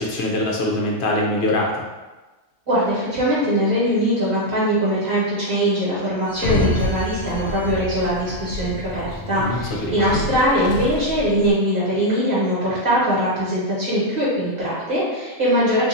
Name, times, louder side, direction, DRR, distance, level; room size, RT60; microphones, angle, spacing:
voice 1, 0.0-1.8 9.4-10.0, left 1 dB, 65° left, -2 dB, 0.8 m, -23 dB
voice 2, 2.7-15.9, equal, 45° right, -9 dB, 1.3 m, -21 dB
Sliding door, 6.3-11.5, left 1 dB, 85° left, 1.0 m, -27 dB
2.6 x 2.5 x 4.1 m, 1.2 s
omnidirectional pair, 1.3 m